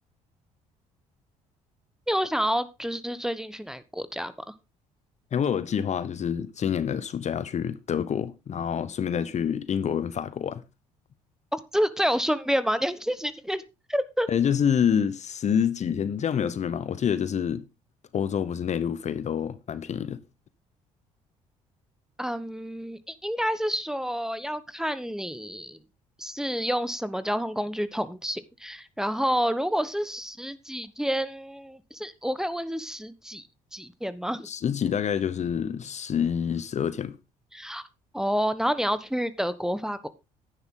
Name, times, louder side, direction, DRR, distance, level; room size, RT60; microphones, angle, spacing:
voice 1, 2.1-4.3 11.5-13.6 13.9-14.3 22.2-25.8 26.2-33.4 33.7-34.5 37.5-37.8 38.1-40.1, equal, 5° right, 1.2 m, -29 dB
voice 2, 5.3-10.6 14.3-17.6 18.1-20.2 34.4-37.2, left 8 dB, 45° left, 0.9 m, -27 dB
11.0 x 9.7 x 3.8 m
hypercardioid pair, 60°, 16 cm